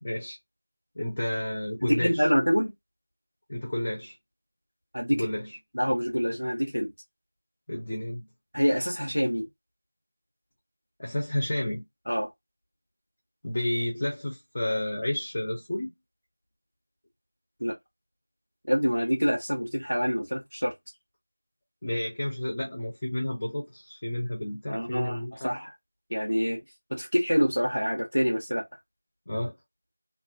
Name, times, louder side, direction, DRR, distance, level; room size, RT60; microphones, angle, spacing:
voice 1, 0.0-0.4 1.0-2.3 3.5-4.1 5.1-5.6 7.7-8.3 11.0-11.8 13.4-15.9 21.8-25.5 29.3-29.5, left 1 dB, 20° left, 0.6 m, -31 dB
voice 2, 1.8-2.7 4.9-5.2 5.7-6.9 8.5-9.5 12.1-12.3 17.6-17.8 18.7-20.7 24.7-25.7 26.1-26.6 26.9-28.7, equal, 90° left, 0.9 m, -26 dB
2.5 x 2.4 x 2.4 m
figure-of-eight pair, 175°, 0 cm